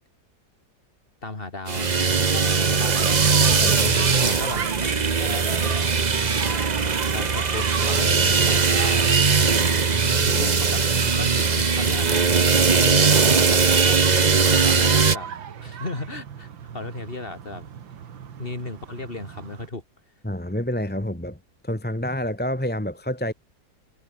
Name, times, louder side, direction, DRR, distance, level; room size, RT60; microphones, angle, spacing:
voice 1, 1.2-1.9 2.3-3.4 3.8-4.6 5.2-5.7 7.1-9.0 10.2-12.3 12.8-13.7 14.4-15.3 15.6-17.7 18.4-19.8, left 2 dB, 30° left, 3.1 m, -35 dB
sound 1, 1.7-15.2, right 5 dB, 30° right, 0.9 m, -20 dB
sound 2, 1.7-19.7, right 8 dB, 90° right, 2.4 m, -36 dB
voice 2, 3.2-3.9 20.2-21.4 21.6-23.3, left 1 dB, 5° left, 1.3 m, -28 dB
omnidirectional pair, 2.0 m